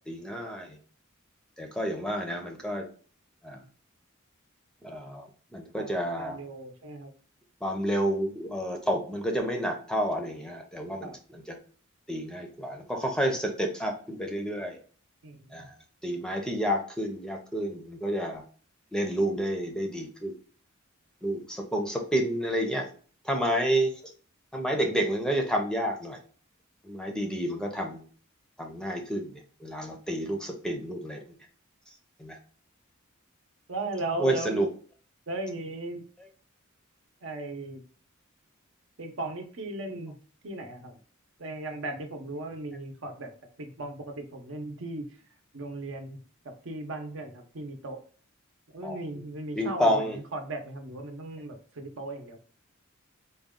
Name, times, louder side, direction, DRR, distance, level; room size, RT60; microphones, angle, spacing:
voice 1, 0.1-0.7 1.6-2.9 3.4-3.6 4.8-6.4 7.6-11.6 12.1-14.8 15.5-15.7 16.0-18.4 18.9-20.3 21.2-22.9 23.2-23.9 24.5-26.2 26.8-28.0 28.6-31.2 32.2-32.4 34.2-34.7 48.8-49.2 49.6-50.2, equal, 5° left, 3 dB, 0.6 m, -30 dB
voice 2, 5.8-7.1 11.0-11.2 15.2-15.7 33.7-34.7 35.3-36.0 37.2-37.8 39.0-40.1 40.4-40.9 41.4-43.3 43.6-45.0 45.5-46.2 46.6-48.0 48.7-52.4, right 2 dB, 65° right, 4 dB, 0.8 m, -37 dB
4.0 x 2.3 x 3.6 m, 0.42 s
head